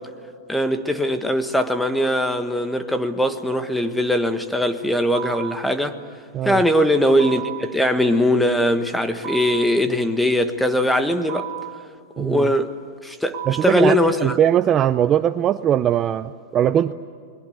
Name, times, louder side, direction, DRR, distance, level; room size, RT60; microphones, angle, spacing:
voice 1, 0.5-6.0 6.4-11.5 12.2-12.7 13.0-13.4 13.6-14.4, equal, 5° left, 8 dB, 1.5 m, -20 dB
sound 1, 5.1-5.6 7.2-7.7 9.2-9.7 11.3-11.8 13.3-13.8, right 14 dB, 45° right, 2.5 m, -32 dB
voice 2, 12.2-12.5 13.5-16.9, right 10 dB, 30° right, 12 dB, 0.6 m, -20 dB
30.0 x 21.5 x 8.0 m, 2.1 s
supercardioid pair, 140°, 0 cm